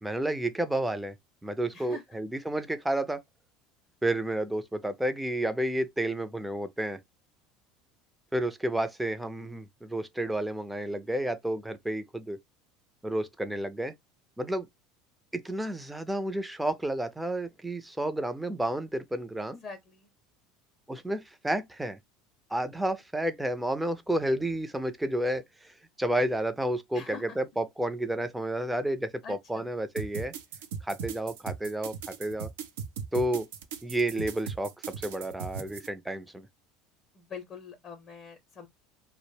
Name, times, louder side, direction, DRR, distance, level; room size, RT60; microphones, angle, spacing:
voice 1, 0.0-1.1 1.4-3.2 4.0-7.0 8.3-12.4 13.0-13.9 14.4-14.7 15.3-19.6 20.9-22.0 22.5-30.3 30.8-32.5 33.1-33.5 33.8-36.5, right 1 dB, 5° right, 0.5 m, -31 dB
voice 2, 19.4-20.1 26.9-27.4 29.2-29.7 37.1-38.7, left 5 dB, 45° left, 0.6 m, -44 dB
sound 1, 30.0-35.9, right 6 dB, 75° right, 0.5 m, -38 dB
2.1 x 2.0 x 3.2 m
hypercardioid pair, 80°, 0 cm